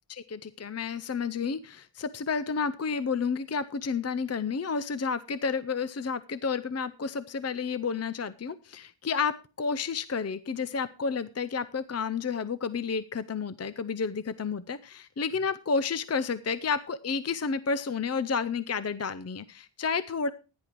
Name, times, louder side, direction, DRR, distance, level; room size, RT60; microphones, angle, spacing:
voice 1, 0.1-20.3, left 5 dB, 35° left, 14 dB, 0.5 m, -31 dB
15.5 x 10.5 x 3.0 m, 0.32 s
wide cardioid pair, 80°, 47 cm